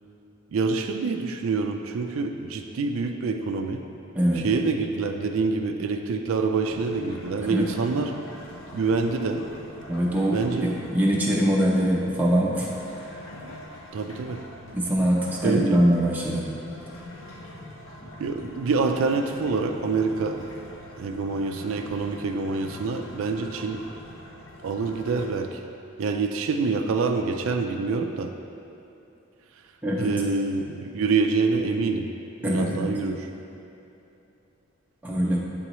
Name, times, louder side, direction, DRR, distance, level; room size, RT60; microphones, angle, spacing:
voice 1, 0.5-3.8 4.3-8.1 8.7-9.4 10.3-10.7 13.9-14.4 15.4-15.8 18.2-20.4 21.0-23.8 24.6-25.6 26.0-28.3 30.0-32.1 32.4-33.3, right 4 dB, 80° right, 5 dB, 0.4 m, -26 dB
voice 2, 4.1-4.5 7.4-7.6 9.9-12.7 13.1-13.2 14.7-16.4 29.8-30.1 32.4-32.9 35.0-35.4, equal, 10° right, -4 dB, 0.6 m, -23 dB
sound 1, 6.6-25.3, left 1 dB, 80° left, 0.7 m, -44 dB
9.1 x 3.8 x 3.0 m, 2.8 s
head